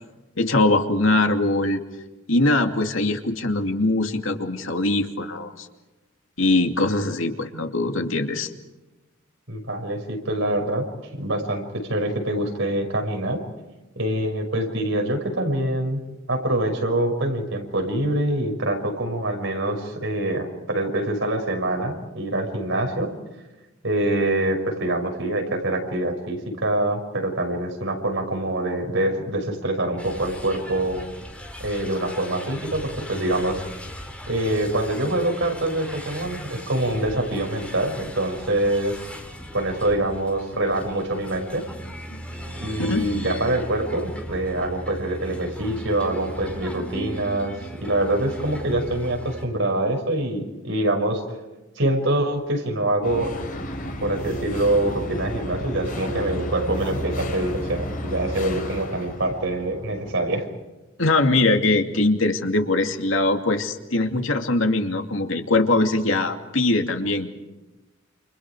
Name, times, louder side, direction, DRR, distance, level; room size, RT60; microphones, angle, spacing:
voice 1, 0.4-1.8 2.3-5.7 6.4-8.5 42.8-43.0 61.0-67.3, left 2 dB, 75° left, 4 dB, 2.6 m, -22 dB
voice 2, 9.5-10.8 11.2-11.6 11.9-13.4 14.0-16.0 16.3-23.1 23.8-31.0 31.6-33.6 34.3-39.0 39.5-41.6 42.6-51.2 51.8-53.3 54.0-60.5, right 1 dB, 65° right, 3 dB, 6.0 m, -25 dB
sound 1, 30.0-49.5, equal, 5° left, 4.2 m, -38 dB
sound 2, 53.0-60.1, equal, 45° left, 5.5 m, -32 dB
29.5 x 28.5 x 5.0 m, 1.1 s
head